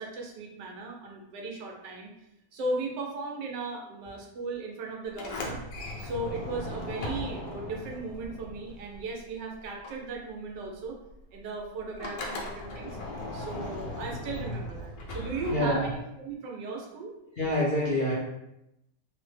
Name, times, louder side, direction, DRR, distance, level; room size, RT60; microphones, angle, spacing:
voice 1, 0.0-2.1 2.5-5.6 6.0-11.0 11.3-13.0 13.3-17.1, right 3 dB, 90° right, 0 dB, 1.3 m, -36 dB
Sliding door, 5.1-9.4 9.6-16.0, left 1 dB, 85° left, 1.3 m, -38 dB
voice 2, 15.5-15.9 17.4-18.1, left 1 dB, 55° left, -7 dB, 0.6 m, -26 dB
3.4 x 2.1 x 3.2 m, 0.85 s
omnidirectional pair, 1.8 m